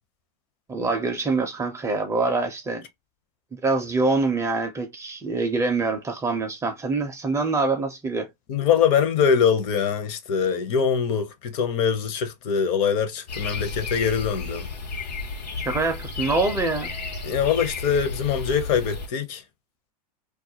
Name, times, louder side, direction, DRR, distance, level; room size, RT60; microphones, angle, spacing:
voice 1, 0.7-2.8 3.5-8.3 15.6-16.9, right 3 dB, 15° right, 0.4 m, -25 dB
voice 2, 8.5-14.7 17.2-19.4, left 7 dB, 45° left, 0.7 m, -23 dB
sound 1, 13.3-19.1, left 4 dB, 85° left, 1.0 m, -33 dB
2.3 x 2.2 x 2.7 m
hypercardioid pair, 115°, 21 cm